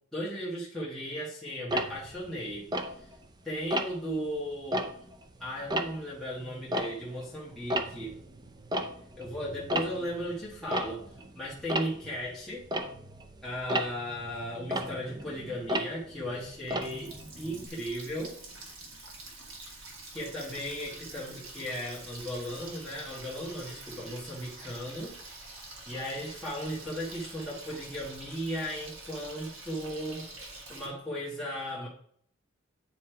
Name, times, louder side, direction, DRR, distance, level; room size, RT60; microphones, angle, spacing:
voice 1, 0.1-3.2 3.4-4.9 5.4-8.2 9.2-11.0 11.3-12.6 13.4-18.4 19.6-19.8 20.1-31.9, equal, ahead, -9 dB, 1.5 m, -36 dB
Tick-tock, 1.7-3.3 3.7-4.1 4.6-7.3 7.6-17.7, right 1 dB, 20° right, 0.5 m, -34 dB
Water tap faucet, 16.4-30.9, right 2 dB, 70° right, 1.7 m, -46 dB
9.5 x 3.2 x 4.5 m, 0.64 s
head